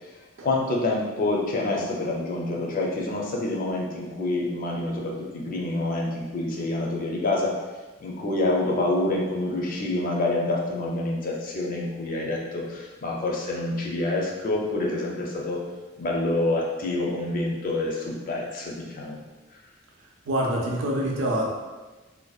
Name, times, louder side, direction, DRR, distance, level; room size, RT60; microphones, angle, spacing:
voice 1, 0.4-7.5 8.0-15.6 16.0-19.2, left 2 dB, 45° left, -2 dB, 0.4 m, -27 dB
voice 2, 20.3-21.5, right 1 dB, 75° right, -2 dB, 0.5 m, -25 dB
2.5 x 2.1 x 2.3 m, 1.2 s
head